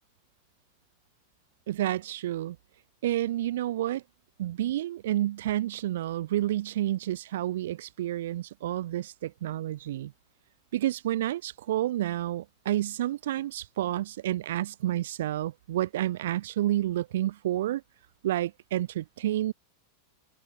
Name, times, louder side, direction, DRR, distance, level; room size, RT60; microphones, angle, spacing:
voice 1, 1.7-2.6 3.0-4.0 4.4-10.1 10.7-17.8 18.2-19.5, right 13 dB, 75° right, 1.6 m, -30 dB
hypercardioid pair, 105°, 0 cm